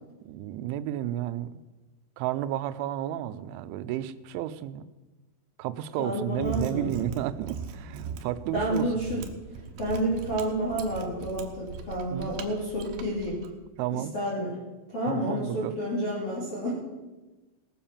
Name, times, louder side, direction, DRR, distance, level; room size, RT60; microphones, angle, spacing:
voice 1, 0.3-1.5 2.2-4.9 5.6-8.9 12.1-12.3 13.8-14.1 15.1-15.8, right 12 dB, 90° right, 13 dB, 3.1 m, -32 dB
voice 2, 6.0-6.9 8.5-9.2 9.8-13.4 13.9-14.6 14.9-16.9, right 1 dB, 35° left, -9 dB, 3.1 m, -30 dB
Mechanisms, 6.3-13.5, right 6 dB, 70° right, 2.7 m, -39 dB
18.0 x 7.4 x 7.1 m, 1.2 s
omnidirectional pair, 5.4 m